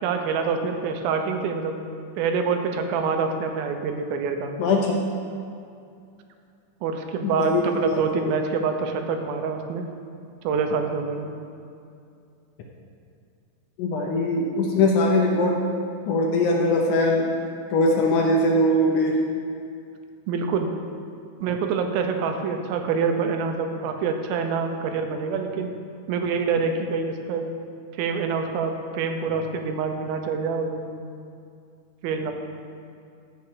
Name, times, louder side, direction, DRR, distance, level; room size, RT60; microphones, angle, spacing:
voice 1, 0.0-1.8 2.2-4.5 6.8-9.9 10.4-11.3 20.3-20.7 21.4-25.7 26.1-27.5 28.0-30.9 32.0-32.3, right 5 dB, 85° right, 5 dB, 2.6 m, -26 dB
voice 2, 4.6-5.0 7.4-8.4 13.8-15.6 16.1-17.3 17.7-19.2, left 1 dB, 75° left, 0 dB, 2.0 m, -21 dB
13.5 x 5.8 x 4.9 m, 2.5 s
omnidirectional pair, 4.2 m